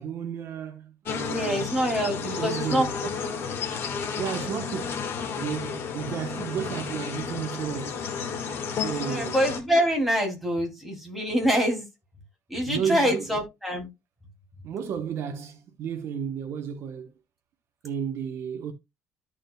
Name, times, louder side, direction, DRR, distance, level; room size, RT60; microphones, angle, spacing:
voice 1, 0.0-1.7 2.2-3.0 4.2-5.0 5.4-8.0 8.8-9.4 12.7-13.3 14.6-17.1 17.8-18.7, right 8 dB, 60° right, 1.1 m, -33 dB
sound 1, 1.1-9.6, left 6 dB, 55° left, 1.6 m, -32 dB
voice 2, 1.3-3.1 9.0-11.9 12.5-13.9, equal, ahead, 2.9 m, -25 dB
13.5 x 5.0 x 2.3 m
cardioid pair, 140°, 5 cm